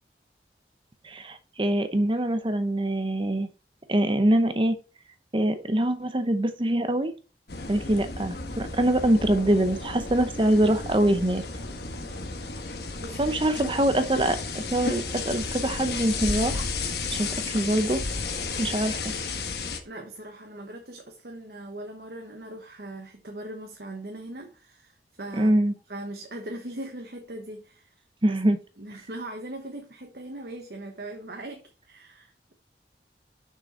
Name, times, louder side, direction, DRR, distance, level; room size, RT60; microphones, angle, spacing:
voice 1, 1.0-3.5 3.9-4.8 5.3-7.1 7.7-11.4 13.2-16.7 17.1-18.0 18.6-19.0 25.3-25.7 28.2-28.6, right 1 dB, 30° right, 0.7 m, -24 dB
sound 1, 7.5-19.8, left 4 dB, 65° left, 1.5 m, -33 dB
voice 2, 13.0-13.6 19.8-25.5 25.9-27.9 28.2-28.4 28.8-32.5, right 1 dB, 60° right, 1.2 m, -40 dB
6.9 x 6.3 x 4.3 m
head